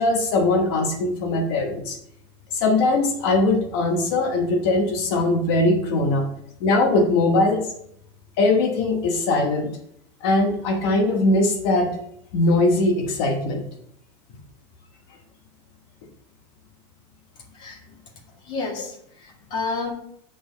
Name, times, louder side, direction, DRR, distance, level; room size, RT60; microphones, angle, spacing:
voice 1, 0.0-2.0 2.5-6.3 6.6-7.7 8.4-9.7 10.2-12.0 12.3-13.6, left 2 dB, 55° left, 4 dB, 1.1 m, -21 dB
voice 2, 18.4-19.9, left 3 dB, 30° left, 3 dB, 1.7 m, -30 dB
7.7 x 6.3 x 3.9 m, 0.72 s
supercardioid pair, 155°, 15 cm